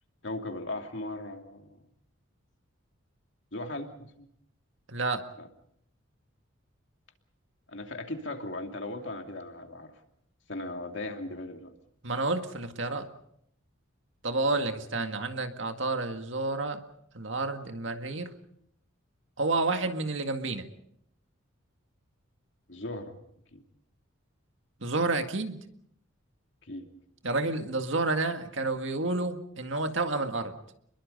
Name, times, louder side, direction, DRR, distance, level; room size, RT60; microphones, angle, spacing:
voice 1, 0.2-1.8 3.5-4.3 5.4-5.5 7.7-9.9 10.5-11.7 22.7-23.2 23.5-23.6 26.6-26.9, left 2 dB, 60° left, 4 dB, 2.7 m, -38 dB
voice 2, 4.9-5.2 12.0-13.1 14.2-16.8 17.1-18.3 19.4-20.7 24.8-25.6 27.2-30.5, right 3 dB, 65° right, 6 dB, 2.0 m, -30 dB
29.5 x 22.0 x 5.4 m, 0.72 s
head